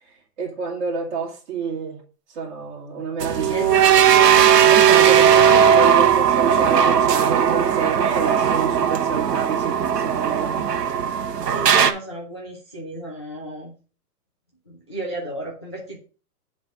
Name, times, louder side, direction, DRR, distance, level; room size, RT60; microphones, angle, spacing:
voice 1, 0.0-2.0 2.3-3.6 4.7-10.7, right 5 dB, 45° right, 2.1 m, -28 dB
sound 1, 3.2-11.9, right 8 dB, 80° right, 1.1 m, -17 dB
voice 2, 3.4-4.4 11.5-13.7 14.7-16.0, right 1 dB, 20° left, 0.4 m, -32 dB
7.5 x 3.4 x 6.3 m
hypercardioid pair, 170°, 47 cm